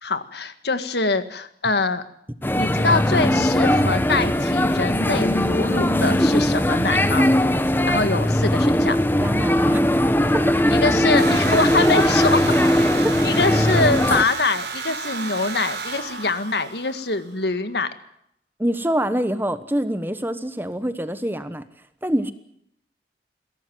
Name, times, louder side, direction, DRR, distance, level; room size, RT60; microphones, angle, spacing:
voice 1, 0.0-2.0 2.5-7.3 7.8-9.0 10.7-12.4 13.2-17.9, left 3 dB, 70° left, 11 dB, 1.8 m, -24 dB
sound 1, 2.4-14.2, left 1 dB, 10° left, 1.1 m, -19 dB
voice 2, 9.2-9.8 10.3-10.6 18.6-21.6 22.0-22.3, equal, 10° right, 12 dB, 1.1 m, -25 dB
sound 2, 11.2-17.3, right 4 dB, 80° right, 4.0 m, -31 dB
22.5 x 17.0 x 9.3 m, 0.72 s
head